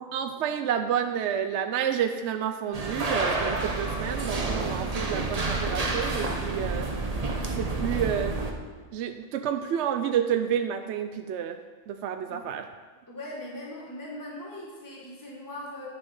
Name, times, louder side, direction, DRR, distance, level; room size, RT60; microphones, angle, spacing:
voice 1, 0.0-6.9 7.6-8.4 8.9-11.6 11.9-12.7, right 9 dB, 65° right, 7 dB, 0.8 m, -29 dB
sound 1, 2.7-8.5, right 3 dB, 35° right, 0.9 m, -29 dB
voice 2, 13.1-15.9, left 1 dB, 15° left, -4 dB, 1.6 m, -40 dB
9.3 x 7.0 x 5.3 m, 1.4 s
omnidirectional pair, 1.4 m